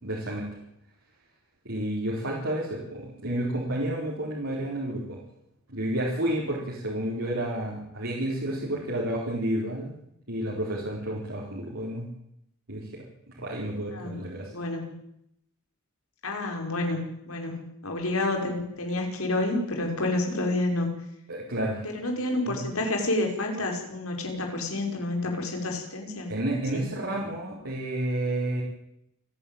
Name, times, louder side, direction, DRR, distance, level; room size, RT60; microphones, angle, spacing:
voice 1, 0.0-0.4 1.6-5.2 5.7-9.9 10.3-12.1 12.7-12.9 13.3-14.5 21.3-21.8 22.5-22.6 26.3-28.6, right 1 dB, 70° right, -5 dB, 4.8 m, -30 dB
voice 2, 13.9-14.2 14.5-14.9 16.2-20.9 21.9-26.3 26.7-26.9, left 2 dB, 80° left, 2 dB, 5.3 m, -29 dB
28.0 x 11.0 x 9.1 m, 0.77 s
head